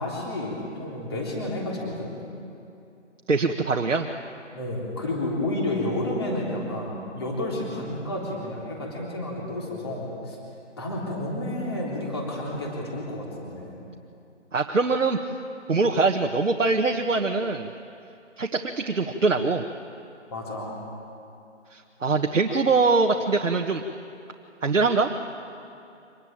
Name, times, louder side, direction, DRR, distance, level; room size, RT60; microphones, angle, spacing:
voice 1, 0.0-2.1 4.5-10.4 10.8-13.7 20.3-20.8, left 1 dB, 20° left, -3 dB, 3.4 m, -31 dB
voice 2, 3.3-4.1 14.5-15.2 15.7-17.7 18.4-19.6 21.7-23.8 24.6-25.1, right 4 dB, 90° right, 2 dB, 1.6 m, -23 dB
25.0 x 20.5 x 8.8 m, 2.6 s
hypercardioid pair, 180°, 37 cm